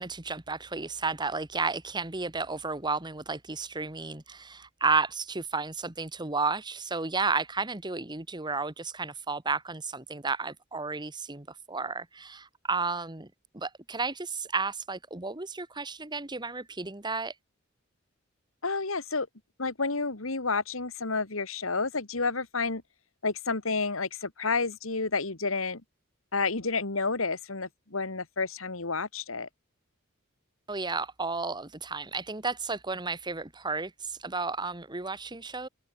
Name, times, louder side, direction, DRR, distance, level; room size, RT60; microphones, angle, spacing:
voice 1, 0.0-13.3 13.5-17.3 30.7-35.7, right 4 dB, 20° right, 1.6 m, -32 dB
voice 2, 18.6-19.3 19.6-22.8 23.2-25.8 26.3-29.5, left 4 dB, 80° left, 2.2 m, -30 dB
open air
head